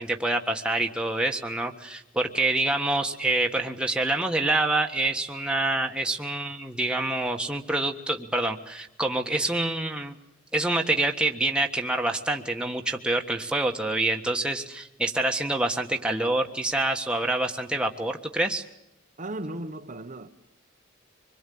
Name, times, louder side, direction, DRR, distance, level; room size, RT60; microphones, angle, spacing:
voice 1, 0.0-10.1 10.5-18.6, right 2 dB, 5° right, 1.5 m, -26 dB
voice 2, 19.2-20.3, right 1 dB, 35° right, 1.0 m, -35 dB
25.5 x 21.5 x 8.6 m
head